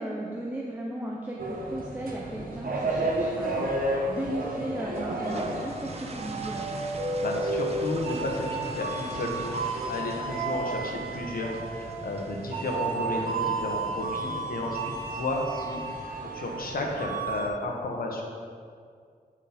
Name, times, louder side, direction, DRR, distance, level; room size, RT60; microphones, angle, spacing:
voice 1, 0.0-6.7, right 1 dB, 10° right, -2 dB, 0.7 m, -36 dB
sound 1, 1.4-17.5, right 2 dB, 65° right, 1.2 m, -32 dB
sound 2, 5.0-15.5, right 3 dB, 40° right, 0.7 m, -45 dB
voice 2, 7.0-18.2, left 2 dB, 70° left, 0 dB, 1.3 m, -33 dB
9.5 x 5.5 x 5.1 m, 2.1 s
wide cardioid pair, 140°, 16 cm